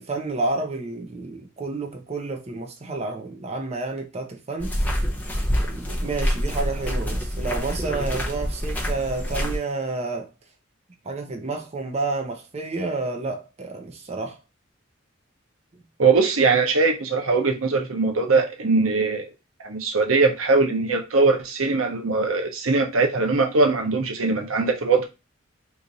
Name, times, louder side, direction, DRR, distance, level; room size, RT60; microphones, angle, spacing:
voice 1, 0.0-4.8 5.6-10.3 11.0-14.4, right 3 dB, 30° right, 0.6 m, -30 dB
sound 1, 4.6-9.6, equal, 10° left, 0.7 m, -26 dB
voice 2, 16.0-19.3 19.6-25.1, right 3 dB, 85° right, 0.8 m, -21 dB
3.0 x 2.5 x 3.9 m
head